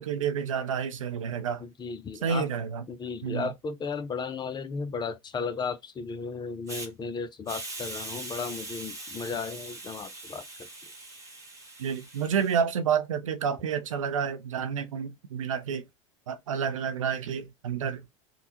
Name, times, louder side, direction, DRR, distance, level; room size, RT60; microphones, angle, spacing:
voice 1, 0.0-1.6 2.2-2.9 3.2-3.5 11.8-15.8 16.3-18.1, right 7 dB, 85° right, 0.6 m, -29 dB
voice 2, 1.6-2.5 2.9-10.7, left 5 dB, 25° left, 0.7 m, -35 dB
Hiss, 6.7-6.9 7.5-12.6, right 2 dB, 20° right, 1.3 m, -41 dB
3.6 x 2.3 x 3.0 m
hypercardioid pair, 85°, 17 cm